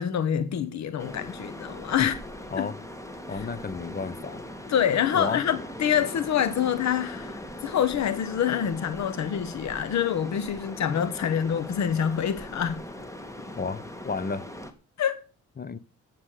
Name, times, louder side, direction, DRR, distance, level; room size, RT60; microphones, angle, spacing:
voice 1, 0.0-2.1 2.6-2.7 3.3-3.5 4.7-12.8 15.0-15.2, left 9 dB, 65° left, 1.1 m, -26 dB
sound 1, 1.0-14.7, left 1 dB, 10° left, 2.0 m, -40 dB
voice 2, 3.3-4.4 5.1-5.4 13.6-14.5 15.6-15.8, left 4 dB, 30° left, 1.0 m, -32 dB
11.5 x 8.0 x 6.6 m
cardioid pair, 90°, 30 cm